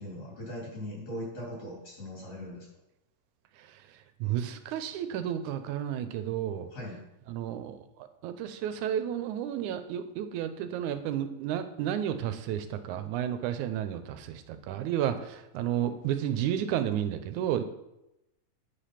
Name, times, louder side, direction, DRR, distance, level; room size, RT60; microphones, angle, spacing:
voice 1, 0.0-2.7 6.7-7.0, equal, 55° left, -4 dB, 4.7 m, -40 dB
voice 2, 4.2-6.7 7.3-7.8 8.2-17.6, right 10 dB, 90° right, 10 dB, 2.2 m, -32 dB
9.3 x 5.1 x 5.8 m, 0.91 s
omnidirectional pair, 3.4 m